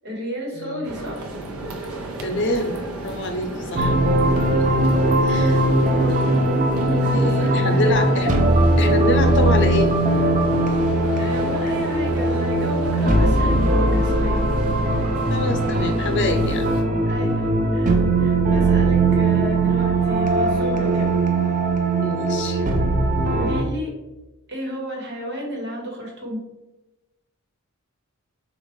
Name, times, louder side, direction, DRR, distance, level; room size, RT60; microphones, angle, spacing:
voice 1, 0.0-1.3 5.8-5.9 7.0-8.0 11.2-14.4 17.1-21.1 23.3-23.9 24.5-26.4, equal, 50° right, -1 dB, 1.4 m, -32 dB
voice 2, 0.5-0.9 2.2-4.0 4.4-4.7 5.2-5.6 6.1-6.3 7.1-8.3 8.8-9.9 15.3-16.7 22.0-22.6, left 2 dB, 55° left, 6 dB, 0.6 m, -26 dB
sound 1, 0.8-16.8, right 1 dB, 85° right, 0.8 m, -33 dB
sound 2, 3.8-23.6, right 2 dB, 35° right, 0.5 m, -20 dB
6.7 x 2.5 x 3.1 m, 0.98 s
head